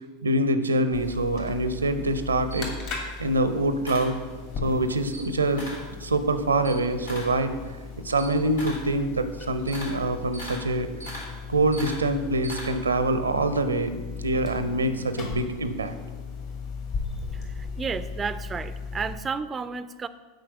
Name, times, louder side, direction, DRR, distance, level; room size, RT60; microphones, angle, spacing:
voice 1, 0.2-4.2 4.6-5.7 6.0-7.5 8.0-10.9 11.5-15.9, right 2 dB, 85° right, 11 dB, 0.5 m, -25 dB
sound 1, 0.9-19.1, left 5 dB, 55° left, 2.2 m, -37 dB
Camera, 2.1-4.7 5.0-5.9 6.3-13.0, equal, 85° left, 2.6 m, -41 dB
voice 2, 17.3-20.1, right 5 dB, 20° right, 13 dB, 0.3 m, -32 dB
7.9 x 4.6 x 5.9 m, 1.3 s
figure-of-eight pair, 85°, 0 cm